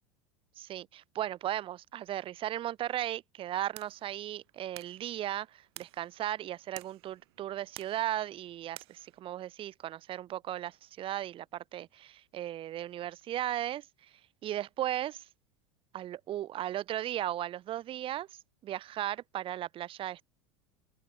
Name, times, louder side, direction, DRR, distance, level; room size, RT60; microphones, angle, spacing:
voice 1, 0.6-13.9 14.4-15.2 15.9-18.3 18.6-20.2, right 12 dB, 35° right, 1.2 m, -36 dB
sound 1, 3.6-9.2, right 22 dB, 60° right, 4.8 m, -53 dB
open air
figure-of-eight pair, 80°, 15 cm